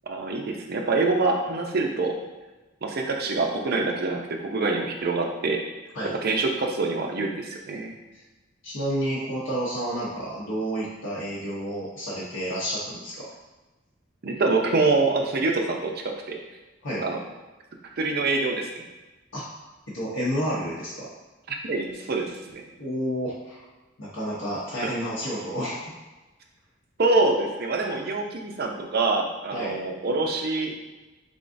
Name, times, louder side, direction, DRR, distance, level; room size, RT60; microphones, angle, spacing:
voice 1, 0.1-2.1 2.8-5.6 6.2-7.9 14.2-16.4 17.0-17.2 18.0-18.8 21.5-22.6 24.8-24.9 27.0-30.7, right 3 dB, 50° right, 2 dB, 0.5 m, -25 dB
voice 2, 8.6-13.3 16.8-17.0 19.3-19.5 19.9-21.1 22.8-23.7 24.0-25.9 29.5-29.8, equal, 75° left, -7 dB, 0.9 m, -30 dB
3.8 x 3.5 x 2.6 m, 1.1 s
head